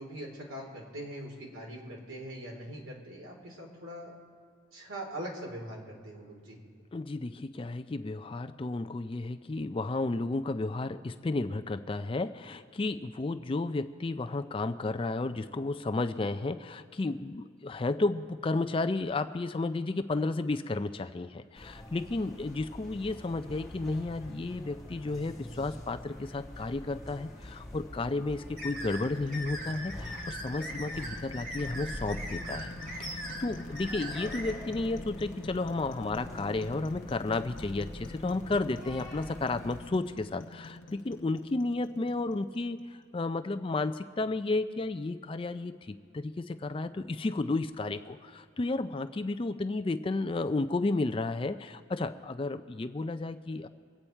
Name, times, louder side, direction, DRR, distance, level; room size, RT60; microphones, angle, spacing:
voice 1, 0.0-4.1 4.7-6.6, right 1 dB, 80° right, -1 dB, 3.3 m, -42 dB
voice 2, 6.9-32.7 33.0-53.7, left 2 dB, 25° left, 9 dB, 0.4 m, -32 dB
sound 1, 21.5-39.9, left 1 dB, ahead, 2.0 m, -45 dB
sound 2, 27.9-43.0, left 2 dB, 65° left, 0.9 m, -47 dB
sound 3, 28.6-34.5, equal, 40° right, 2.5 m, -40 dB
24.0 x 8.5 x 4.5 m, 2.3 s
head